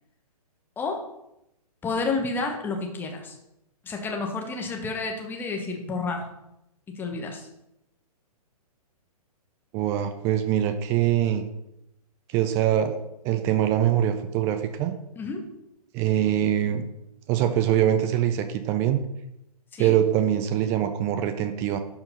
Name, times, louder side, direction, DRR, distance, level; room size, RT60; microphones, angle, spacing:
voice 1, 1.8-3.4 3.8-6.3 6.9-7.5 15.2-15.5 19.7-19.9, left 3 dB, 10° left, 2 dB, 1.1 m, -30 dB
voice 2, 9.7-11.5 12.3-14.9 15.9-16.8 17.3-19.0 19.8-21.8, right 11 dB, 15° right, 9 dB, 0.3 m, -23 dB
11.0 x 4.4 x 5.5 m, 0.85 s
figure-of-eight pair, 125°, 20 cm